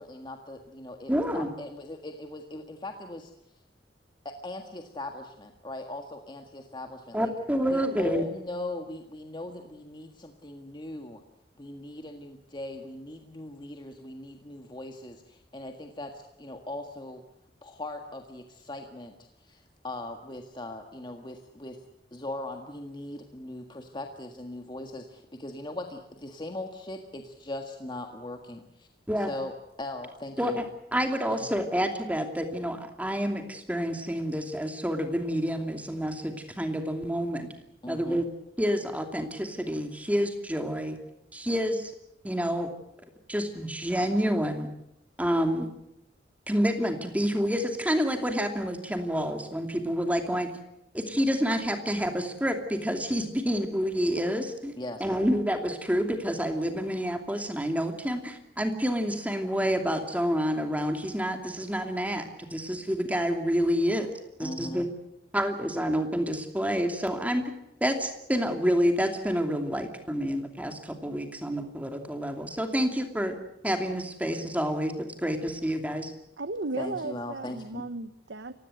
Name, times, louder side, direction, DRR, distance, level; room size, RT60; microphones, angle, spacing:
voice 1, 0.0-3.3 4.2-7.3 7.7-11.2 11.6-17.2 17.6-21.8 22.1-28.9 29.2-29.5 29.8-30.6 31.3-31.5 37.8-38.2 54.8-55.2 64.4-64.9 76.8-77.9, left 1 dB, 25° left, 4 dB, 1.7 m, -39 dB
voice 2, 1.1-1.5 7.1-8.2 29.1-29.3 30.4-30.6 30.9-37.5 37.9-38.3 38.6-41.0 41.3-41.9 42.2-42.7 43.3-44.7 45.2-45.7 46.5-50.5 50.9-64.1 64.4-64.9 65.3-67.4 67.8-73.4 73.6-74.9 75.2-76.1, equal, 10° right, 5 dB, 2.7 m, -28 dB
voice 3, 76.4-78.5, right 3 dB, 75° right, 11 dB, 1.0 m, -35 dB
28.5 x 16.5 x 8.0 m, 0.84 s
head